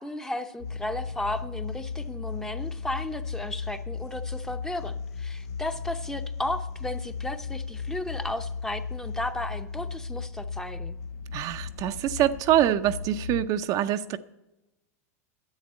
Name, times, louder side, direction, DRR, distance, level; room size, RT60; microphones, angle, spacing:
voice 1, 0.0-11.0, left 1 dB, 5° left, 0.7 m, -34 dB
sound 1, 0.6-13.5, left 5 dB, 90° left, 1.2 m, -36 dB
voice 2, 11.3-14.2, right 11 dB, 45° right, 0.5 m, -25 dB
10.5 x 7.9 x 8.6 m
supercardioid pair, 125°, 9 cm